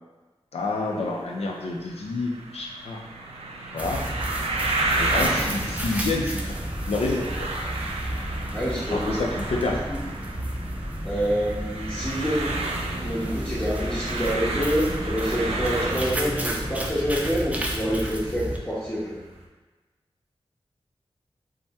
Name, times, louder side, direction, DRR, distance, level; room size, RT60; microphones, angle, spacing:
voice 1, 0.5-3.0 3.7-4.0 5.0-6.6 6.9-7.5 8.9-9.8, left 3 dB, 90° left, 0 dB, 0.4 m, -28 dB
sound 1, 0.6-19.4, right 2 dB, 85° right, 0.4 m, -33 dB
sound 2, 3.8-18.6, right 1 dB, 15° right, 0.4 m, -32 dB
voice 2, 8.5-9.2 9.6-10.0 11.0-12.6 13.0-19.2, equal, 15° left, -10 dB, 0.7 m, -27 dB
2.7 x 2.0 x 3.4 m, 1.2 s
wide cardioid pair, 75°, 10 cm